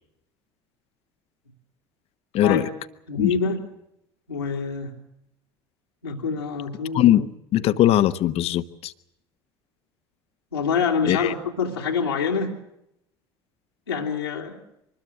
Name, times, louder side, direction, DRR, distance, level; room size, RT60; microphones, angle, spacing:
voice 1, 2.3-2.7 3.2-3.3 6.9-8.9 11.1-11.3, left 13 dB, 50° left, 13 dB, 1.2 m, -20 dB
voice 2, 3.1-3.6 4.3-4.9 6.0-7.2 10.5-12.5 13.9-14.6, left 5 dB, 90° left, -4 dB, 2.7 m, -26 dB
24.5 x 20.5 x 7.7 m, 0.80 s
figure-of-eight pair, 65°, 13 cm